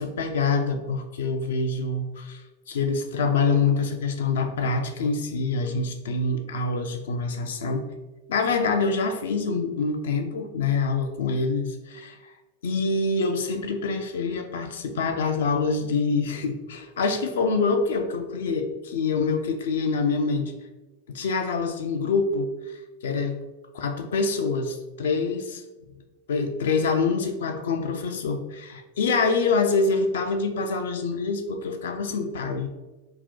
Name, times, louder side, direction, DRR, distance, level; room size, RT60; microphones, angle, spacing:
voice 1, 0.0-2.4 2.7-7.9 8.3-11.7 12.6-20.5 21.1-23.4 23.8-25.6 26.3-32.7, left 4 dB, 60° left, 6 dB, 0.4 m, -25 dB
3.9 x 2.1 x 2.6 m, 1.1 s
figure-of-eight pair, 90°, 0 cm